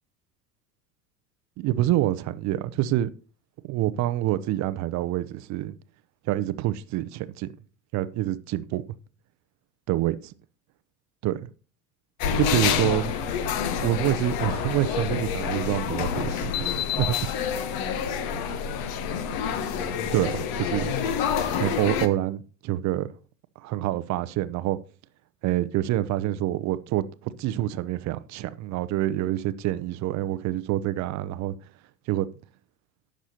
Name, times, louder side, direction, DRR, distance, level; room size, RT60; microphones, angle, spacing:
voice 1, 1.6-3.1 3.6-5.7 6.3-7.5 7.9-8.8 9.9-10.3 11.2-11.5 12.4-13.1 13.8-17.3 20.1-20.9 21.6-23.1 23.6-24.8 25.4-31.5 32.1-32.3, right 14 dB, 35° right, 0.6 m, -27 dB
sound 1, 12.2-22.1, left 7 dB, 45° left, 1.1 m, -28 dB
15.5 x 6.1 x 2.8 m
figure-of-eight pair, 80°, 48 cm